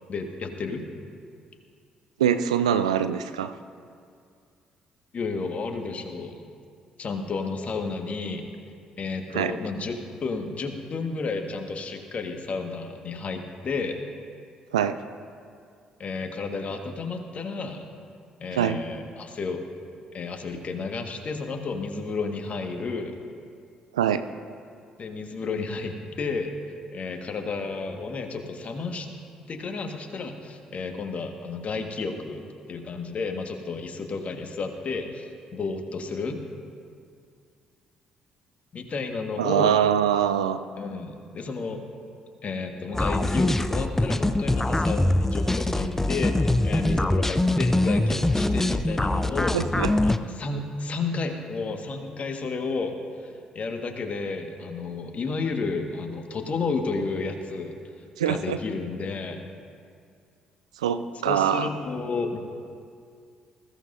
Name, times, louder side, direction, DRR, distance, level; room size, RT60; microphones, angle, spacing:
voice 1, 0.1-0.9 5.1-6.4 7.0-8.5 9.0-14.0 16.0-17.9 18.4-19.6 20.1-23.2 25.0-26.5 26.9-29.1 29.5-32.4 32.7-36.4 38.7-39.8 40.8-41.8 42.4-49.6 50.0-59.5 61.2-62.4, left 4 dB, 40° left, 4 dB, 1.6 m, -32 dB
voice 2, 2.2-3.5 9.3-9.5 14.7-15.0 18.5-18.8 23.9-24.2 39.4-40.6 49.5-49.9 58.2-58.6 60.8-61.7, right 9 dB, 80° right, 11 dB, 0.4 m, -23 dB
sound 1, 42.9-50.2, left 1 dB, 10° left, 0.6 m, -23 dB
20.0 x 15.5 x 2.7 m, 2.3 s
figure-of-eight pair, 45°, 3 cm